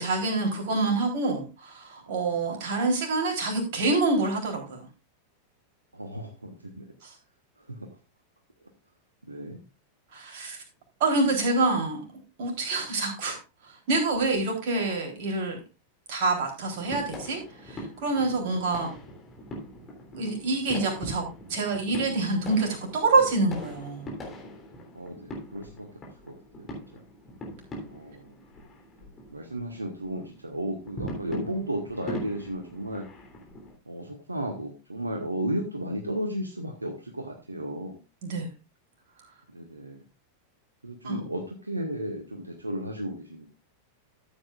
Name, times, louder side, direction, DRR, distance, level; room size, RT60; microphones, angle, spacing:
voice 1, 0.0-4.8 7.0-7.1 10.1-10.6 11.0-12.0 12.4-13.4 13.9-15.6 16.1-17.4 17.7-18.9 20.1-24.1 38.2-38.5 41.0-41.2, right 3 dB, 50° right, 1 dB, 3.7 m, -26 dB
voice 2, 5.9-6.9 7.7-7.9 9.3-9.6 18.3-18.5 24.9-26.7 26.9-27.0 27.9-28.4 29.3-33.0 33.9-38.0 39.5-40.0 40.8-43.5, right 1 dB, 80° right, 3 dB, 1.2 m, -34 dB
sound 1, 16.7-33.7, equal, 20° left, 3.4 m, -41 dB
13.5 x 8.3 x 2.5 m, 0.27 s
figure-of-eight pair, 90°, 0 cm